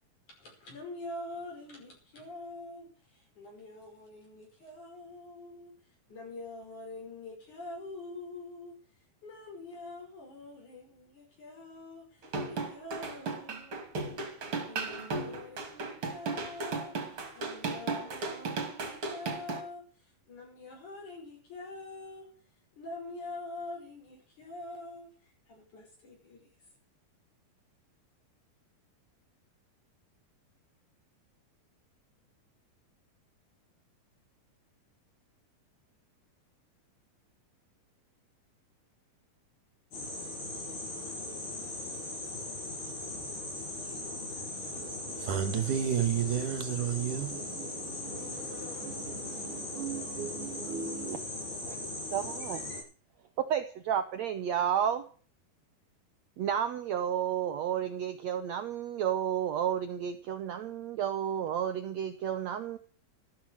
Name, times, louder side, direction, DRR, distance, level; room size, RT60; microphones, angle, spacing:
voice 1, 0.4-8.7 9.2-14.0 14.5-22.3 22.8-25.1 25.5-26.5, left 2 dB, 50° left, 6.7 m, -45 dB
sound 1, 12.2-19.6, right 3 dB, 35° right, 3.2 m, -35 dB
sound 2, 39.9-52.8, left 2 dB, 80° left, 9.2 m, -39 dB
voice 2, 44.8-51.2, right 9 dB, 60° right, 2.8 m, -34 dB
voice 3, 51.6-52.7 53.4-55.0 56.4-62.8, right 9 dB, 90° right, 1.5 m, -32 dB
13.5 x 13.0 x 6.4 m
omnidirectional pair, 4.5 m